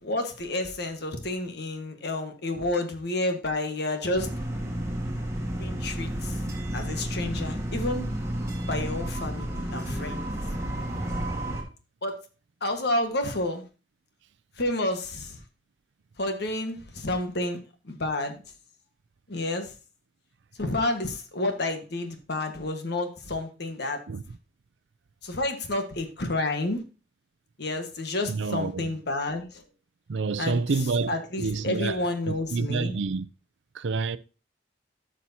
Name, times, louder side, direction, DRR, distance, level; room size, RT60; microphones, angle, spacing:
voice 1, 0.0-4.3 5.6-6.4 6.7-8.1 8.7-10.3 12.0-12.2 12.6-13.6 14.5-15.4 16.2-17.6 17.8-18.4 19.3-19.7 20.6-24.0 25.2-26.8 27.6-29.6 30.4-30.6 31.1-32.9, left 2 dB, 60° left, 1.4 m, -30 dB
sound 1, 4.1-11.6, right 1 dB, 15° right, 1.8 m, -31 dB
voice 2, 28.3-28.9 30.1-32.0 32.3-33.3 33.7-34.2, right 4 dB, 75° right, 0.5 m, -28 dB
12.5 x 6.1 x 2.8 m
head